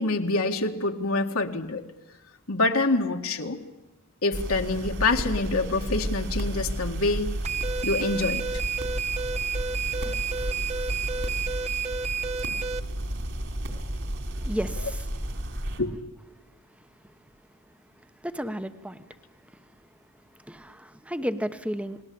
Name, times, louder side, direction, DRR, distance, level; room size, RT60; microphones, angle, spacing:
voice 1, 0.0-1.8 2.5-3.6 4.2-7.3 7.8-8.4 15.8-16.0, left 3 dB, 65° left, 3 dB, 1.9 m, -26 dB
sound 1, 4.3-15.8, right 1 dB, 55° right, 4.2 m, -32 dB
sound 2, 7.4-12.8, right 6 dB, 30° right, 1.0 m, -31 dB
voice 2, 14.3-15.4 18.2-19.1 19.5-19.6 20.4-22.0, equal, 5° right, 11 dB, 1.1 m, -33 dB
29.5 x 20.5 x 8.7 m, 1.1 s
head